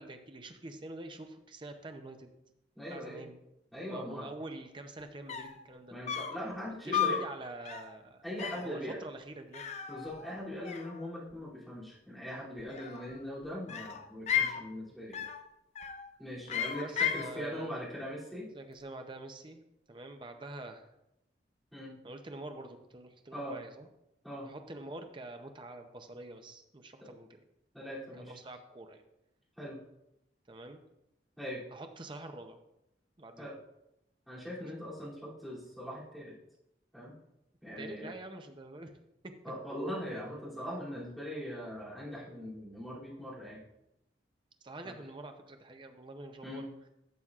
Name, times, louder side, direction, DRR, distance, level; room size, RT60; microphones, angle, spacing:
voice 1, 0.0-2.3 2.9-3.4 3.9-6.0 6.7-8.3 8.5-9.7 16.7-17.8 18.5-19.6 19.9-20.9 22.0-23.9 24.4-27.4 28.2-29.0 30.5-30.8 31.7-32.6 33.2-33.5 37.8-38.9 39.2-39.3 44.6-46.7, right 2 dB, 30° right, 6 dB, 0.6 m, -46 dB
voice 2, 2.7-3.2 3.7-4.3 5.9-7.2 8.2-9.0 9.9-15.2 16.2-18.5 21.7-21.9 23.3-23.6 24.2-24.5 27.0-27.1 27.7-28.3 29.6-29.8 31.4-31.6 33.4-33.5 34.3-36.3 36.9-37.2 37.6-38.1 39.4-43.6 44.8-44.9 46.4-46.7, equal, ahead, -9 dB, 2.8 m, -41 dB
sound 1, 5.0-5.1 5.3-5.6 6.1-6.4 6.9-7.3 7.6-7.9 8.4-8.7 9.5-10.4 10.6-11.4 12.6-13.2 13.7-14.6 15.1-15.4 15.7-16.1 16.5-17.3, left 8 dB, 40° left, 0.5 m, -34 dB
12.0 x 6.9 x 2.4 m, 0.86 s
head